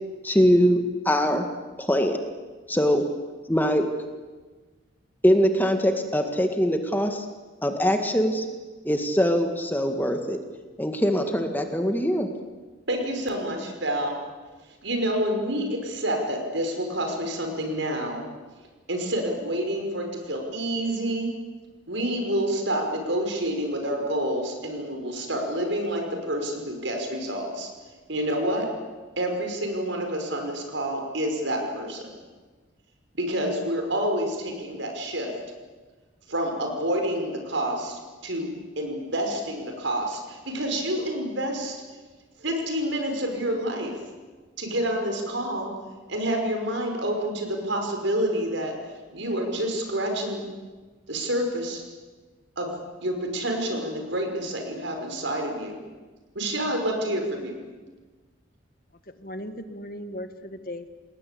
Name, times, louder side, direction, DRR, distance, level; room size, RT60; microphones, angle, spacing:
voice 1, 0.2-1.5 1.8-2.3 2.7-3.0 3.5-3.9 5.2-7.3 7.6-8.5 8.8-10.4 10.8-12.3, equal, 10° left, 5 dB, 1.9 m, -22 dB
voice 2, 12.9-14.2 14.8-18.2 18.9-21.3 21.9-27.7 28.1-28.7 29.2-32.1 33.1-35.3 36.3-38.5 38.8-41.8 42.4-43.9 44.6-45.7 46.1-48.7 49.1-50.4 51.1-51.8 52.6-52.7 53.0-55.7 56.3-57.5, right 1 dB, 70° right, 3 dB, 5.9 m, -28 dB
voice 3, 59.2-60.9, left 1 dB, 45° left, 9 dB, 1.6 m, -37 dB
29.0 x 20.0 x 8.6 m, 1.3 s
head